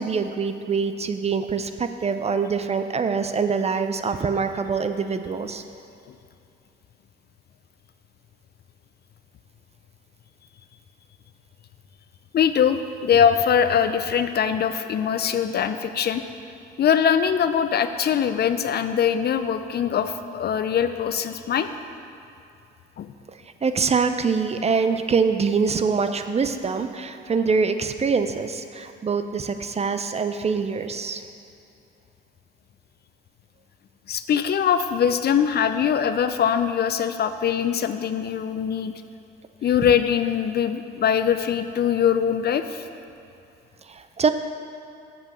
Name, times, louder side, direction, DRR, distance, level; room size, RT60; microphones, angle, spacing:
voice 1, 0.0-5.6 23.3-31.2 43.9-44.3, right 5 dB, 30° right, 9 dB, 0.5 m, -24 dB
voice 2, 12.3-16.2 16.8-21.7 23.0-23.1 34.1-38.9 39.6-42.9, left 8 dB, 50° left, 10 dB, 0.5 m, -22 dB
8.0 x 5.5 x 6.3 m, 2.6 s
cardioid pair, 80°, 21 cm